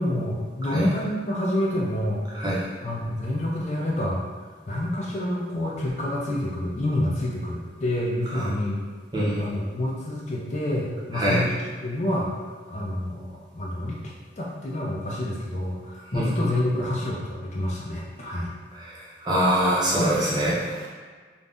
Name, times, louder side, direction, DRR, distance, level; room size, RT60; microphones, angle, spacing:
voice 1, 0.0-4.2 4.7-8.8 9.4-12.4 12.7-14.0 14.4-18.5, left 1 dB, 40° left, -3 dB, 0.4 m, -28 dB
voice 2, 9.1-9.4 11.1-11.4 16.1-16.3 18.7-20.9, right 1 dB, 25° right, -7 dB, 0.6 m, -24 dB
2.6 x 2.1 x 3.4 m, 1.5 s
head